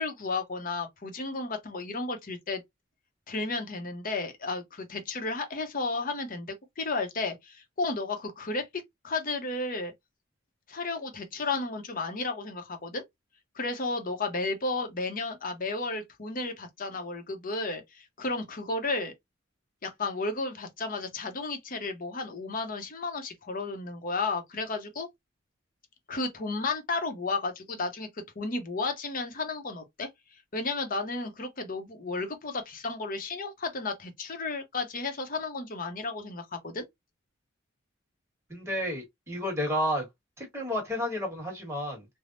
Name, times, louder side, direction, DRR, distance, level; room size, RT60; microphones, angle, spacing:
voice 1, 0.0-2.6 3.3-8.6 9.0-9.9 10.7-13.0 13.5-19.1 19.8-25.1 26.1-28.1 28.4-30.1 30.5-36.8, left 3 dB, 45° left, 0.8 m, -33 dB
voice 2, 38.5-40.1 40.4-42.1, equal, 15° right, 1.5 m, -31 dB
3.4 x 2.2 x 2.5 m
head